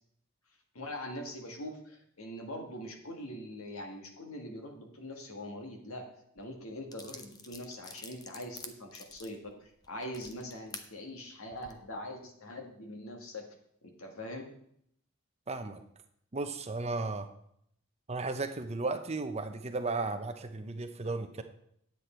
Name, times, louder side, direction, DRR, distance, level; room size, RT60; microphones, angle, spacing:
voice 1, 0.7-6.1 6.4-13.5 13.8-14.5, left 1 dB, 75° left, 3 dB, 1.8 m, -43 dB
sound 1, 6.4-6.5 6.9-10.9 11.5-11.7, left 4 dB, 15° left, 0.6 m, -48 dB
voice 2, 15.5-15.8 16.3-17.3 18.1-21.4, right 3 dB, 30° right, 8 dB, 0.7 m, -35 dB
9.6 x 8.3 x 4.4 m, 0.70 s
head